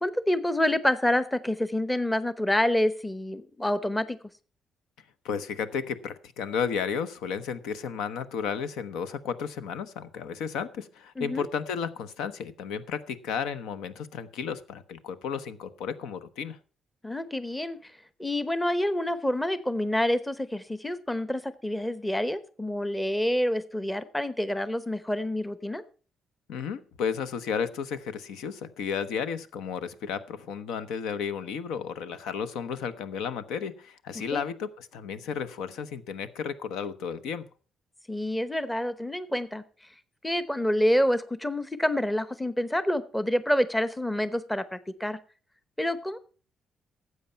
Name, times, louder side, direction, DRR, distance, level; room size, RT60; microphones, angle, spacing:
voice 1, 0.0-4.2 11.2-11.5 17.0-17.9 18.2-25.8 34.3-34.5 38.1-39.6 40.2-45.2 45.8-46.2, left 1 dB, 10° left, 14 dB, 0.9 m, -27 dB
voice 2, 5.2-16.6 26.5-37.4, left 6 dB, 90° left, 13 dB, 0.9 m, -33 dB
12.5 x 8.1 x 5.6 m, 0.40 s
cardioid pair, 90°, 0 cm